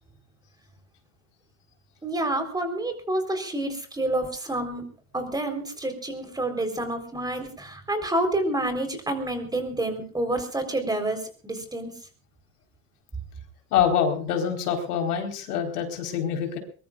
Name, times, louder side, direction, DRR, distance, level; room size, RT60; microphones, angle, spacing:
voice 1, 2.0-4.9 5.1-11.9, right 1 dB, 10° right, 6 dB, 4.1 m, -28 dB
voice 2, 13.7-16.6, left 8 dB, 85° left, 3 dB, 4.4 m, -25 dB
23.0 x 21.5 x 2.5 m, 0.40 s
supercardioid pair, 120°, 44 cm